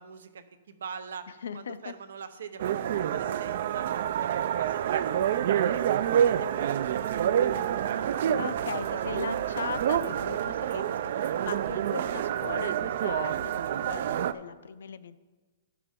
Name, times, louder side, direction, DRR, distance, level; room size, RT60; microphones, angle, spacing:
voice 1, 0.0-3.9 4.2-8.5, right 6 dB, 80° right, 10 dB, 0.8 m, -44 dB
voice 2, 1.4-1.9 8.4-15.2, left 7 dB, 85° left, 14 dB, 0.5 m, -38 dB
sound 1, 2.6-14.3, right 9 dB, 45° right, 0.3 m, -28 dB
13.0 x 5.9 x 3.6 m, 1.3 s
hypercardioid pair, 175°, 0 cm